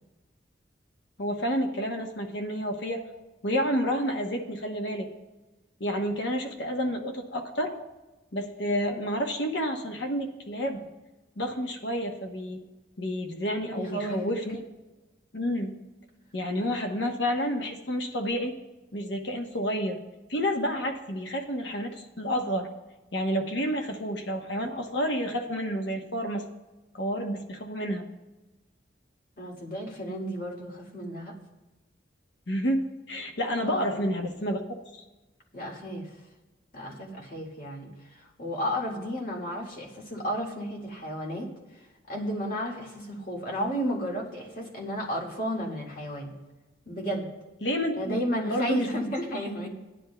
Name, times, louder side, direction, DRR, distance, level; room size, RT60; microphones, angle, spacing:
voice 1, 1.2-3.0 3.4-5.1 5.8-7.7 8.3-10.9 11.4-12.6 13.0-14.6 15.3-15.7 16.3-18.5 18.9-20.0 20.3-22.7 23.1-26.4 26.9-28.1 32.5-32.8 33.1-35.0 47.6-48.9 49.3-49.5, equal, 70° left, 3 dB, 1.0 m, -30 dB
voice 2, 13.7-14.3 29.4-31.4 33.7-34.1 35.5-36.1 36.7-41.5 42.1-46.3 46.9-47.3 48.0-49.7, equal, 50° left, -1 dB, 1.9 m, -33 dB
16.5 x 10.0 x 2.2 m, 1.1 s
head